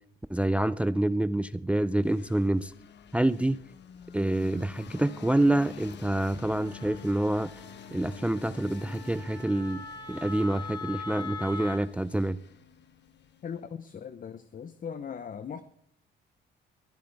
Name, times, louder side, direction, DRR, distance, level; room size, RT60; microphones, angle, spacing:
voice 1, 0.3-2.7 3.1-3.6 4.1-7.5 7.9-9.8 10.1-12.4, right 1 dB, 5° right, 0.4 m, -27 dB
sound 1, 2.0-13.8, left 7 dB, 60° left, 1.0 m, -49 dB
Wind instrument woodwind instrument, 6.6-11.8, left 4 dB, 25° left, 5.5 m, -42 dB
voice 2, 13.4-15.6, left 7 dB, 45° left, 0.7 m, -39 dB
23.5 x 7.8 x 3.4 m
cardioid pair, 90°, 20 cm